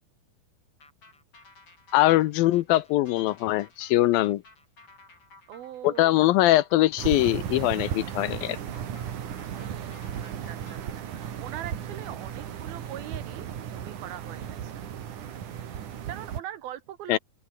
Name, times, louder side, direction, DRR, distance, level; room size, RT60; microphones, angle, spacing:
sound 1, 0.8-10.9, left 3 dB, 35° left, 7.7 m, -55 dB
voice 1, 1.9-4.4 5.8-8.6 17.1-17.2, left 16 dB, 75° left, 2.5 m, -22 dB
voice 2, 5.5-6.2 9.5-10.8 11.1-14.7 16.1-17.2, right 12 dB, 75° right, 3.4 m, -42 dB
sound 2, 7.0-16.4, right 9 dB, 60° right, 3.3 m, -35 dB
open air
omnidirectional pair, 4.4 m